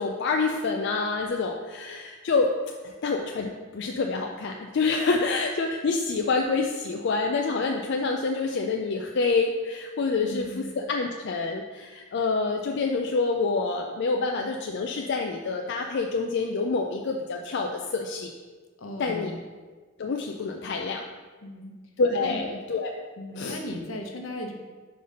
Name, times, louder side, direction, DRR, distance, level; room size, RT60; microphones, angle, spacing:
voice 1, 0.0-2.5 2.8-18.3 19.0-19.3 20.0-21.0 22.0-23.0 23.4-23.6, left 4 dB, 60° left, 2 dB, 0.4 m, -27 dB
voice 2, 10.2-10.7 18.8-19.4 21.4-21.7 22.2-22.4 23.2-24.5, left 1 dB, 80° left, 2 dB, 0.9 m, -36 dB
5.1 x 4.0 x 5.3 m, 1.4 s
head